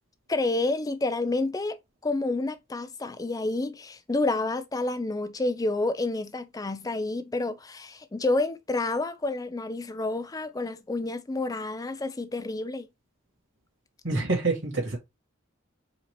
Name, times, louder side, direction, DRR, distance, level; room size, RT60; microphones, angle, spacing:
voice 1, 0.3-1.8 2.0-12.9, left 2 dB, 20° left, 0.4 m, -29 dB
voice 2, 14.0-15.0, right 3 dB, 65° right, 2.2 m, -26 dB
5.0 x 2.8 x 3.2 m
head